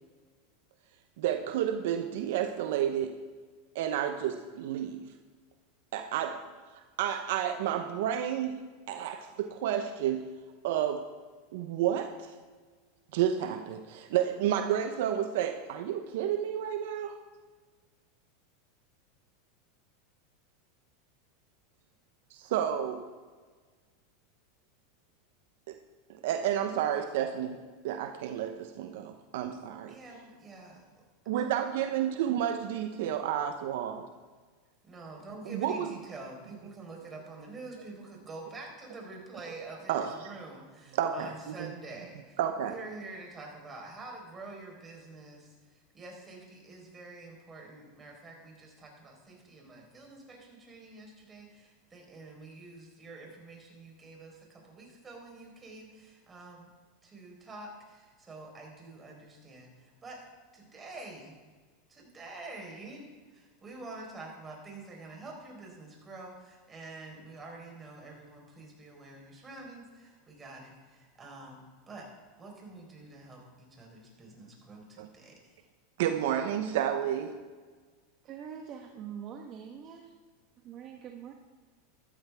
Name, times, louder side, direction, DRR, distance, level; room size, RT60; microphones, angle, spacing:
voice 1, 1.2-3.2 3.7-5.1 5.9-6.4 6.7-8.6 8.9-10.3 10.6-11.1 11.5-12.4 13.1-17.2 22.3-23.1 25.7-25.8 26.1-30.0 31.3-34.1 35.4-35.9 39.9-40.3 40.9-41.7 42.4-42.7 75.0-75.1 76.0-77.4, right 10 dB, 70° right, 7 dB, 0.8 m, -31 dB
voice 2, 29.9-31.0 31.3-31.5 34.8-56.7 57.0-60.2 60.5-61.4 61.9-72.1 72.4-75.6, right 3 dB, 20° right, 0 dB, 4.3 m, -47 dB
voice 3, 78.2-80.1 80.6-81.3, right 8 dB, 40° right, 2 dB, 1.3 m, -44 dB
14.0 x 13.5 x 3.5 m, 1.4 s
hypercardioid pair, 115°, 0 cm